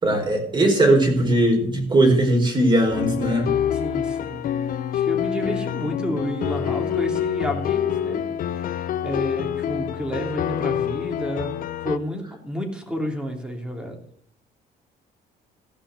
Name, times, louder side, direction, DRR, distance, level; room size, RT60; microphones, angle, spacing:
voice 1, 0.0-3.5, right 1 dB, 25° right, 3 dB, 4.5 m, -19 dB
sound 1, 2.9-12.0, left 9 dB, 55° left, 0.8 m, -26 dB
voice 2, 3.7-4.4 4.9-8.3 9.0-11.5 11.8-14.0, equal, 5° right, 3 dB, 3.3 m, -30 dB
15.5 x 5.7 x 7.8 m, 0.65 s
cardioid pair, 110°, 17 cm